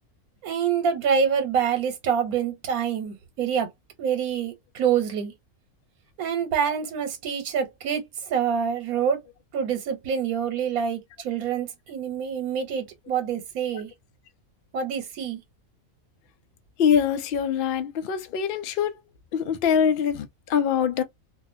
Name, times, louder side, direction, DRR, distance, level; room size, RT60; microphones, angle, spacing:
voice 1, 0.4-3.7 4.0-5.3 6.2-9.2 9.5-13.9 14.7-15.4, right 7 dB, 90° right, 1.2 m, -26 dB
voice 2, 16.8-19.0 19.3-21.0, left 8 dB, 75° left, 0.5 m, -23 dB
2.5 x 2.4 x 2.5 m
omnidirectional pair, 1.5 m